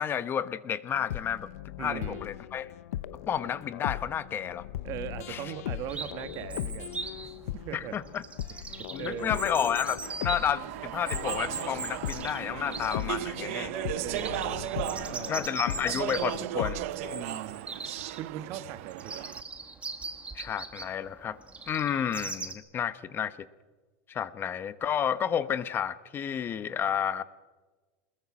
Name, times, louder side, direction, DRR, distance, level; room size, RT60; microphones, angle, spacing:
voice 1, 0.0-1.5 1.8-2.7 3.3-4.7 5.3-5.5 7.7-8.2 8.9-13.7 15.3-16.8 20.3-21.4 21.7-23.4 24.1-27.2, left 8 dB, 30° left, 14 dB, 0.9 m, -31 dB
sound 1, 1.0-17.2, left 13 dB, 85° left, 0.7 m, -39 dB
voice 2, 1.8-2.2 4.8-6.9 7.2-8.0 8.7-9.4 14.0-15.4 17.1-17.7 18.1-19.2, right 10 dB, 50° right, 12 dB, 1.5 m, -40 dB
Chirp tweet, 5.9-22.5, right 4 dB, 15° right, 2.0 m, -41 dB
Speech / Chatter, 10.0-19.4, right 17 dB, 70° right, 0.6 m, -36 dB
23.5 x 21.0 x 6.2 m, 1.3 s
supercardioid pair, 135°, 8 cm